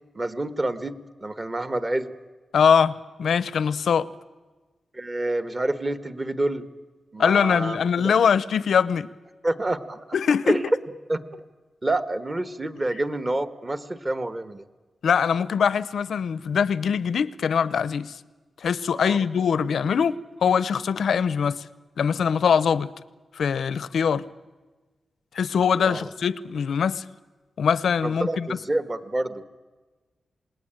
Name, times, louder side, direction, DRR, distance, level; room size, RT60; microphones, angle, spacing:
voice 1, 0.1-2.1 4.9-6.6 7.1-8.1 9.4-10.2 10.5-10.7 11.1-11.2 11.8-14.6 19.0-19.2 25.8-26.1 28.0-29.4, right 2 dB, 25° right, 1.4 m, -28 dB
voice 2, 2.5-4.1 7.2-9.1 10.1-10.6 15.0-18.2 18.6-21.6 22.0-22.9 23.3-24.2 25.3-27.0 27.6-28.6, left 7 dB, 80° left, 0.7 m, -22 dB
28.0 x 19.5 x 9.0 m
wide cardioid pair, 110°, 0 cm